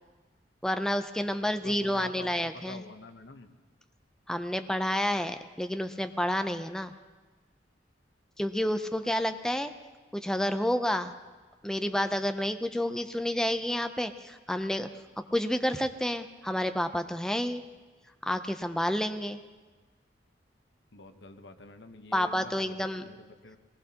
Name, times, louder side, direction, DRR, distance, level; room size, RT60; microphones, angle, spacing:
voice 1, 0.6-2.8 4.3-6.9 8.4-9.7 10.1-11.1 11.6-14.9 15.3-17.6 18.2-19.4 22.1-23.0, equal, 5° left, 8 dB, 0.5 m, -29 dB
voice 2, 1.4-3.5 20.9-23.6, left 2 dB, 85° left, 7 dB, 1.0 m, -47 dB
22.5 x 19.0 x 2.9 m, 1.3 s
head